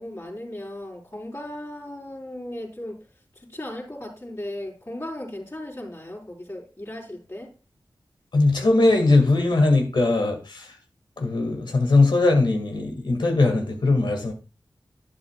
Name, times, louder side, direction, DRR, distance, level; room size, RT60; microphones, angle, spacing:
voice 1, 0.0-3.0 3.4-7.5, left 1 dB, 35° left, -4 dB, 4.4 m, -36 dB
voice 2, 8.3-10.7 11.2-14.3, left 2 dB, 80° left, 4 dB, 2.0 m, -20 dB
11.0 x 8.4 x 2.3 m, 0.29 s
cardioid pair, 40°, 8 cm